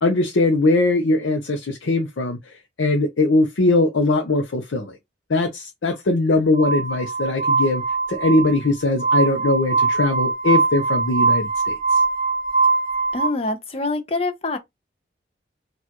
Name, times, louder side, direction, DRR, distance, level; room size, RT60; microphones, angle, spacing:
voice 1, 0.0-2.4 2.8-5.0 5.3-7.8 8.1-11.8, left 2 dB, 85° left, 0.6 m, -20 dB
Glass, 6.6-13.3, right 4 dB, 20° right, 0.6 m, -21 dB
voice 2, 13.1-14.6, left 2 dB, 30° left, 0.6 m, -25 dB
4.4 x 2.4 x 2.9 m
head